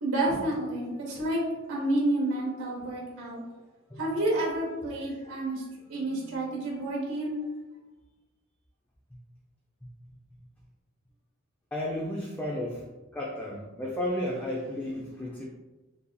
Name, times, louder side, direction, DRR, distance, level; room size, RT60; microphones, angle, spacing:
voice 1, 0.0-1.4 1.7-3.4 4.0-5.6 5.9-7.3, right 1 dB, 65° right, -5 dB, 1.1 m, -29 dB
voice 2, 11.7-12.8 13.1-15.4, left 1 dB, 10° left, -4 dB, 0.4 m, -33 dB
6.8 x 2.8 x 2.2 m, 1.2 s
head